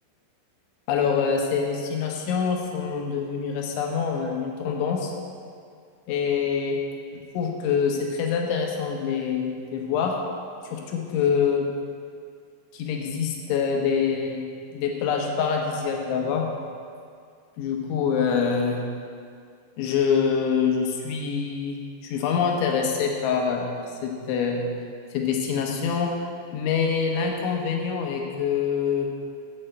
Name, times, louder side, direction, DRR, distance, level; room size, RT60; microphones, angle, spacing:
voice 1, 0.9-5.1 6.1-6.8 7.1-10.2 10.6-11.7 12.7-14.5 14.7-16.5 17.6-18.8 19.8-24.7 25.1-26.1 26.5-29.1, left 6 dB, 75° left, 1 dB, 3.2 m, -25 dB
9.0 x 6.3 x 7.6 m, 2.2 s
omnidirectional pair, 5.9 m